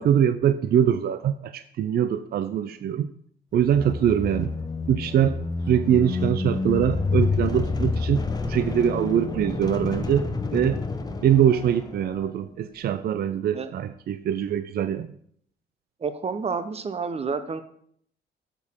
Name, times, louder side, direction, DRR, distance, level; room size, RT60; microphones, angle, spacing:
voice 1, 0.0-3.1 3.5-4.5 4.9-5.4 5.7-10.8 11.2-15.1, right 9 dB, 55° right, 12 dB, 0.4 m, -23 dB
sound 1, 3.6-12.3, left 3 dB, 20° left, 0.8 m, -29 dB
voice 2, 16.0-17.6, right 5 dB, 30° right, 11 dB, 0.8 m, -29 dB
8.9 x 6.6 x 3.6 m, 0.64 s
cardioid pair, 90°, 20 cm